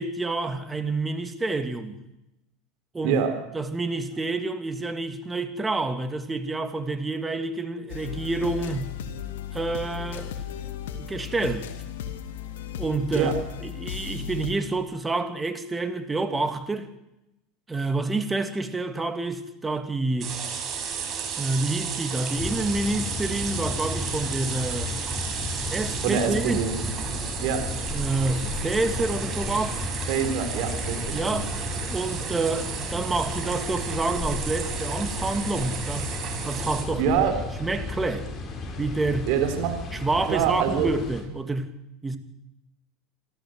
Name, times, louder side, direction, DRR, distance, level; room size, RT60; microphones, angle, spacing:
voice 1, 0.0-2.0 2.9-3.2 3.5-8.9 9.5-10.4 11.1-11.7 12.8-13.3 13.6-16.9 17.7-20.3 21.4-24.9 25.7-26.6 27.9-29.9 31.1-31.5 31.9-36.1 36.4-37.2 37.6-38.3 38.8-39.3 39.9-41.7 42.0-42.2, right 3 dB, 15° right, 2.7 m, -28 dB
sound 1, 7.9-14.5, left 9 dB, 75° left, 2.3 m, -35 dB
sound 2, 20.2-36.8, right 7 dB, 40° right, 6.0 m, -33 dB
sound 3, 22.3-41.2, left 3 dB, 30° left, 6.3 m, -34 dB
voice 2, 26.0-26.8 27.4-27.6 30.1-31.5 37.0-37.3 39.3-39.8 40.3-40.9, right 8 dB, 65° right, 4.3 m, -25 dB
27.0 x 14.0 x 8.0 m
hypercardioid pair, 95°, 0 cm